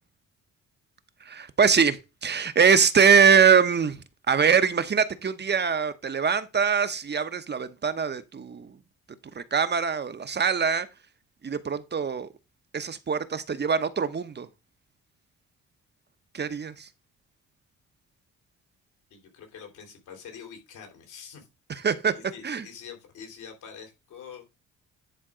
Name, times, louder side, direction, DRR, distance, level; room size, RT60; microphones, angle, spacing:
voice 1, 1.2-8.7 9.3-10.9 11.4-12.3 12.7-14.5 16.3-16.9 21.7-22.1 22.4-22.6, right 6 dB, 35° right, 0.9 m, -23 dB
voice 2, 19.1-21.5 22.2-24.5, left 7 dB, 80° left, 3.5 m, -45 dB
10.5 x 3.6 x 5.0 m
cardioid pair, 90°, 30 cm